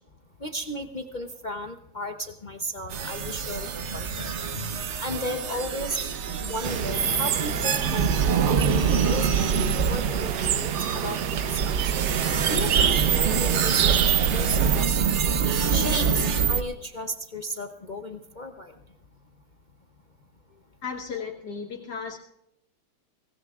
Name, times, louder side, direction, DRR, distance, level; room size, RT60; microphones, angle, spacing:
voice 1, 0.4-6.1 6.4-15.0 15.7-18.7, equal, 50° left, 5 dB, 0.5 m, -35 dB
sound 1, 2.9-16.6, right 6 dB, 50° right, 0.9 m, -25 dB
sound 2, 6.6-14.9, right 8 dB, 80° right, 1.4 m, -28 dB
voice 2, 20.8-22.2, left 5 dB, 75° left, 0 dB, 1.8 m, -35 dB
22.5 x 17.5 x 2.4 m, 0.84 s
omnidirectional pair, 1.8 m